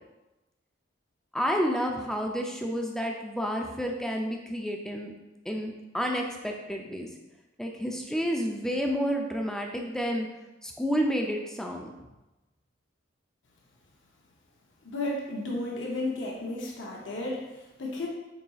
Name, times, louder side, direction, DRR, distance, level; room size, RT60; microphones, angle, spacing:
voice 1, 1.3-5.1 5.5-7.1 7.6-10.3 10.6-11.9, equal, 5° left, 1 dB, 0.3 m, -30 dB
voice 2, 14.8-18.1, left 2 dB, 70° left, -3 dB, 0.7 m, -33 dB
4.0 x 3.9 x 2.3 m, 1.0 s
head